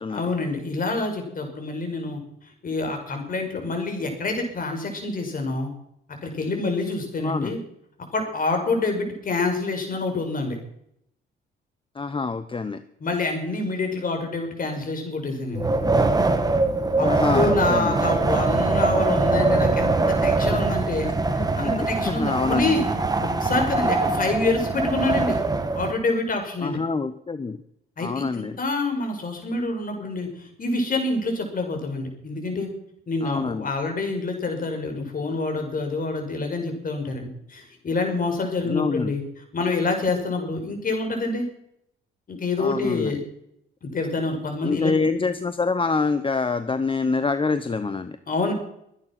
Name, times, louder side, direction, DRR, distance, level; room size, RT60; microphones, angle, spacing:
voice 1, 0.1-2.2 2.6-5.7 6.2-7.6 8.1-10.6 13.0-15.7 17.0-21.1 21.3-22.9 23.2-25.3 25.7-26.8 28.0-32.7 33.1-39.2 39.5-41.5 42.3-43.2 43.8-44.9 48.3-48.5, left 3 dB, 45° left, 4 dB, 5.5 m, -27 dB
voice 2, 7.2-7.5 11.9-12.8 17.0-18.0 21.0-21.1 21.4-22.8 26.6-27.6 28.0-28.5 33.2-33.7 38.6-39.1 42.6-43.2 44.6-48.2, left 4 dB, 25° left, 12 dB, 0.9 m, -26 dB
Wind, 15.5-25.9, right 3 dB, 20° right, 1.9 m, -22 dB
23.5 x 9.6 x 6.0 m, 0.76 s
cardioid pair, 90°, 20 cm